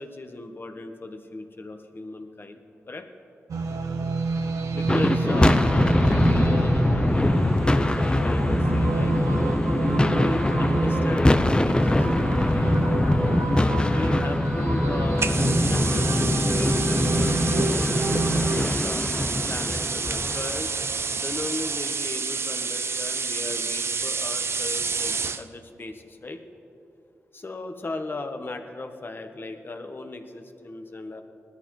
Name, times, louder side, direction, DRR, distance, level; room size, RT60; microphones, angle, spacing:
voice 1, 0.0-2.6 2.9-3.1 4.7-9.4 9.8-12.7 13.1-19.0 19.5-20.8 21.1-26.4 27.3-31.2, left 2 dB, 45° left, 5 dB, 1.3 m, -37 dB
sound 1, 3.5-18.7, right 3 dB, 80° right, 0.9 m, -28 dB
sound 2, 4.8-21.2, left 1 dB, 20° left, 0.6 m, -23 dB
sound 3, 15.2-25.5, right 4 dB, 55° right, 0.5 m, -29 dB
19.5 x 13.0 x 3.2 m, 2.6 s
cardioid pair, 50°, 5 cm